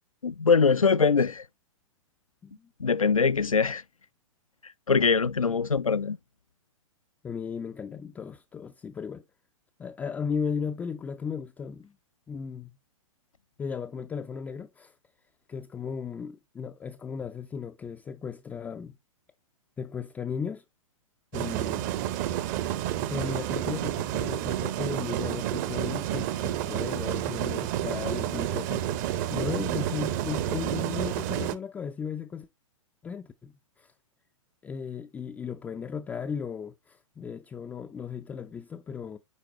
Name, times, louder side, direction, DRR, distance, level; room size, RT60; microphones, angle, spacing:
voice 1, 0.2-1.4 2.8-3.8 4.9-6.2, left 5 dB, 85° left, 0.4 m, -22 dB
voice 2, 7.2-9.2 9.8-11.9 12.3-12.7 13.6-15.0 15.5-19.0 19.8-20.6 21.3-21.9 23.1-32.5 33.0-33.9 34.6-39.2, left 6 dB, 10° left, 0.3 m, -36 dB
sound 1, 21.3-31.5, right 12 dB, 35° right, 0.7 m, -30 dB
9.4 x 4.0 x 2.9 m
figure-of-eight pair, 110°, 17 cm